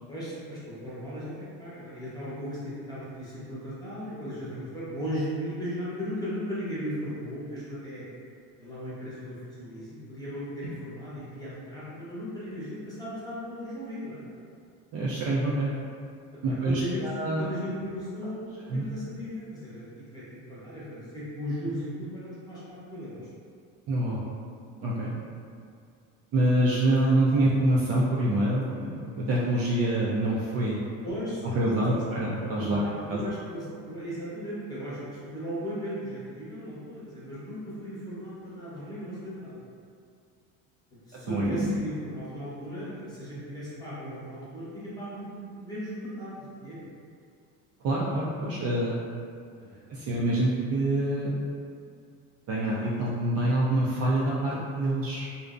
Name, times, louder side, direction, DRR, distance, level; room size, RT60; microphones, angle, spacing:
voice 1, 0.1-8.1 8.6-14.2 16.4-17.0 17.4-20.2 20.5-23.3 27.3-27.5 31.0-32.0 32.6-39.6 40.9-46.9 49.6-49.8, equal, 10° left, -10 dB, 0.8 m, -37 dB
voice 2, 14.9-15.7 16.4-17.5 18.7-18.8 23.9-24.2 24.8-25.1 26.3-30.8 31.5-32.8 33.1-33.2 41.1-41.7 47.8-49.0 49.9-51.3 52.5-55.3, right 1 dB, 40° right, -6 dB, 0.4 m, -26 dB
2.5 x 2.0 x 2.4 m, 2.3 s
supercardioid pair, 105°, 37 cm